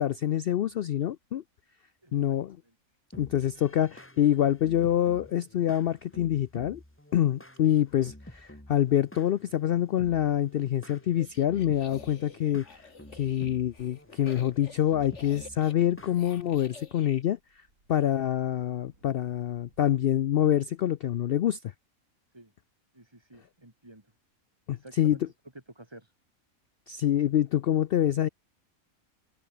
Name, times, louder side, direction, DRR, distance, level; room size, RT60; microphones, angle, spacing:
voice 1, 0.0-1.4 2.1-2.6 3.2-6.8 7.1-12.8 13.1-17.4 17.9-21.6 24.7-25.2 26.9-28.3, left 11 dB, 70° left, 0.5 m, -26 dB
voice 2, 2.0-2.4 2.6-2.8 22.3-22.5 22.9-24.1 24.7-25.2 25.7-26.1, right 1 dB, 20° right, 3.8 m, -51 dB
sound 1, 3.1-16.8, left 1 dB, 10° left, 2.5 m, -51 dB
sound 2, 11.0-17.2, left 4 dB, 55° left, 2.5 m, -50 dB
sound 3, 14.3-19.9, right 2 dB, 70° right, 7.2 m, -66 dB
omnidirectional pair, 1.5 m